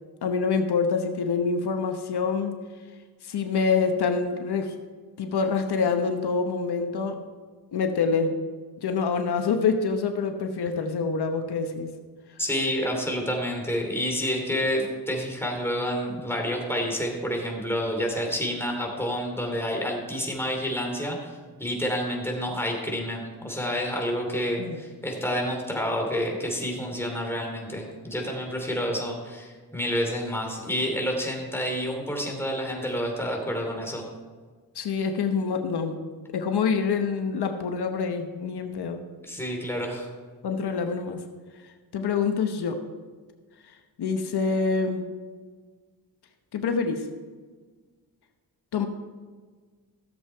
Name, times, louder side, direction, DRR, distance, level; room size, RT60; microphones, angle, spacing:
voice 1, 0.2-2.5 3.2-4.7 5.2-7.2 7.7-8.3 8.8-11.9 24.6-24.8 34.7-36.0 36.3-39.0 40.4-41.2 41.9-42.8 44.0-45.1 46.5-47.0 48.7-48.9, left 5 dB, 80° left, 6 dB, 1.0 m, -26 dB
voice 2, 12.4-34.1 39.2-40.1, equal, 5° left, 1 dB, 2.8 m, -29 dB
14.5 x 7.6 x 4.5 m, 1.5 s
cardioid pair, 90°, 39 cm